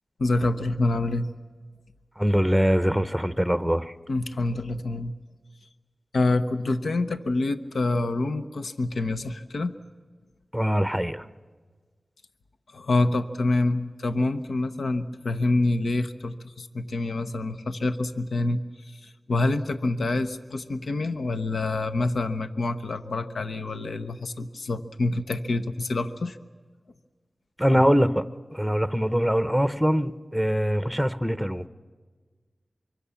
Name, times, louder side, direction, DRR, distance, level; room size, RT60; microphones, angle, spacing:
voice 1, 0.2-1.3 4.1-5.1 6.1-9.7 12.7-18.6 18.9-26.4 27.7-27.8, left 2 dB, 80° left, 9 dB, 0.9 m, -26 dB
voice 2, 2.2-3.9 10.5-11.3 27.6-28.2 28.5-31.7, equal, ahead, 13 dB, 0.9 m, -23 dB
24.5 x 23.5 x 7.1 m, 1.4 s
cardioid pair, 50°, 0 cm